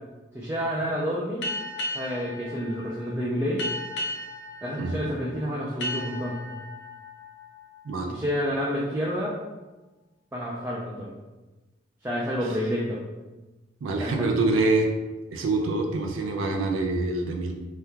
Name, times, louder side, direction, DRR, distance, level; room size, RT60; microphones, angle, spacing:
voice 1, 0.3-1.4 1.9-3.6 4.6-6.4 8.1-9.3 10.3-11.1 12.0-13.0 14.0-14.3, equal, 10° right, -5 dB, 0.3 m, -29 dB
sound 1, 1.4-8.7, left 1 dB, 55° left, 0.5 m, -36 dB
voice 2, 13.8-14.9 15.3-17.5, right 3 dB, 85° right, 2 dB, 0.4 m, -25 dB
2.8 x 2.3 x 3.5 m, 1.2 s
head